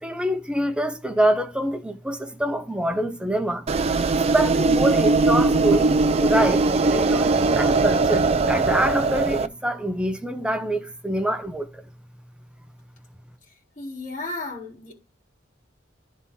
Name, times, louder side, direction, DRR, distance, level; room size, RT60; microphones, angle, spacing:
voice 1, 0.0-3.7 4.1-5.9 6.2-11.7, right 1 dB, 5° right, 0.9 m, -25 dB
sound 1, 3.7-9.5, right 3 dB, 30° right, 0.4 m, -20 dB
voice 2, 13.5-14.9, left 2 dB, 40° left, 3.8 m, -34 dB
11.0 x 4.2 x 3.8 m
head